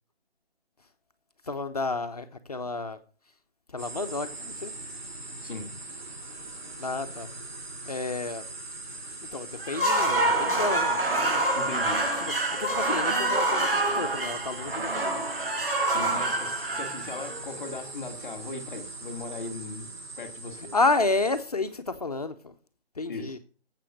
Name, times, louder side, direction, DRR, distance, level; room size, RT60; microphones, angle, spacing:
voice 1, 1.4-3.0 3.7-4.7 6.8-7.3 7.9-8.4 9.3-11.0 12.2-15.2 20.7-22.5 23.0-23.4, left 3 dB, 40° left, 0.9 m, -30 dB
sound 1, 3.8-21.4, right 2 dB, 45° right, 5.6 m, -41 dB
sound 2, 9.6-17.7, right 2 dB, 60° right, 5.0 m, -27 dB
voice 2, 11.5-12.0 15.8-20.7 23.1-23.4, left 3 dB, 5° left, 1.1 m, -38 dB
13.0 x 7.7 x 6.4 m
figure-of-eight pair, 165°, 31 cm